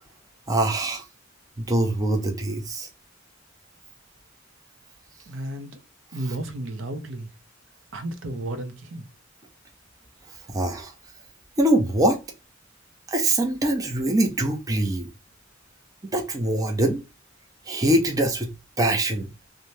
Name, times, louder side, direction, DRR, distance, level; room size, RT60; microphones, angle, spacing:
voice 1, 0.5-1.0 1.6-2.9 10.5-10.9 11.6-12.2 13.1-15.1 16.1-17.0 17.7-18.5 18.8-19.3, right 1 dB, 20° right, 0.4 m, -23 dB
voice 2, 5.3-5.8 6.1-7.3 7.9-9.0, right 1 dB, 70° right, 0.6 m, -33 dB
2.7 x 2.1 x 3.1 m
head